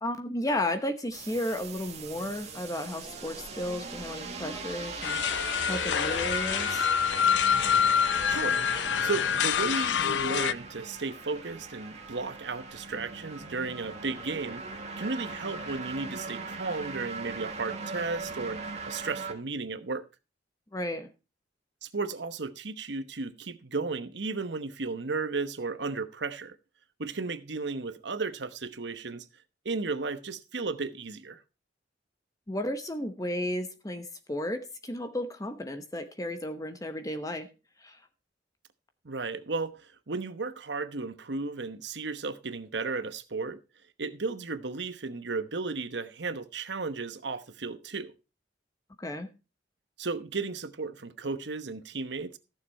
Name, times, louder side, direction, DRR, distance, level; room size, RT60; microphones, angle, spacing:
voice 1, 0.0-5.2 5.7-6.9 20.7-21.1 32.5-37.5 37.8-38.0 49.0-49.3, left 1 dB, 20° left, 0.9 m, -33 dB
sound 1, 1.1-19.3, right 4 dB, 35° right, 1.8 m, -39 dB
sound 2, 5.0-10.5, left 8 dB, 75° left, 0.5 m, -26 dB
voice 2, 8.3-8.7 9.0-20.0 21.8-26.6 27.0-29.3 29.6-31.4 39.0-43.6 44.0-48.1 50.0-52.4, right 4 dB, 65° right, 1.0 m, -34 dB
14.5 x 6.8 x 4.3 m
head